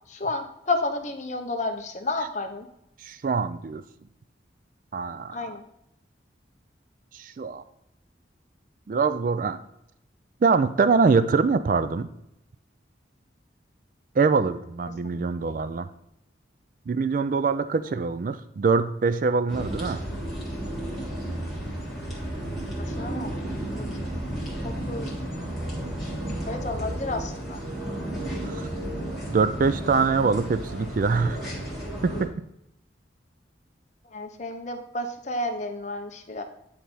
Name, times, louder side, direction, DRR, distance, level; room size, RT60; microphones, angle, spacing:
voice 1, 0.1-2.7 5.3-5.6 15.1-15.7 22.8-23.3 23.7-24.2 24.6-25.3 26.5-27.6 34.1-36.4, left 2 dB, 40° left, 5 dB, 0.7 m, -32 dB
voice 2, 3.0-3.8 4.9-5.4 7.1-7.6 8.9-9.6 10.4-12.1 14.2-15.9 16.9-20.0 28.4-28.7 29.3-31.5 32.0-32.3, right 4 dB, 45° right, 12 dB, 0.3 m, -24 dB
sound 1, 19.5-32.3, right 1 dB, ahead, 1.6 m, -33 dB
9.2 x 3.4 x 4.2 m, 0.81 s
head